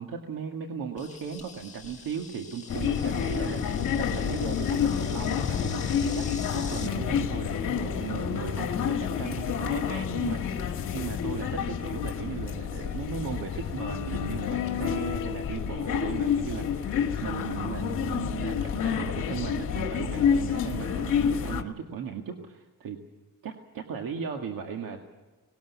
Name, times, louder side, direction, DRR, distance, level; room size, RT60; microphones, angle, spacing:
voice 1, 0.0-6.3 6.5-23.0 23.4-25.0, right 6 dB, 85° right, 3 dB, 2.0 m, -37 dB
Insect, 1.0-6.9, left 5 dB, 20° left, 1.9 m, -44 dB
sound 1, 2.7-21.6, left 7 dB, 65° left, 2.0 m, -29 dB
20.0 x 19.0 x 8.3 m, 1.3 s
cardioid pair, 155°, 33 cm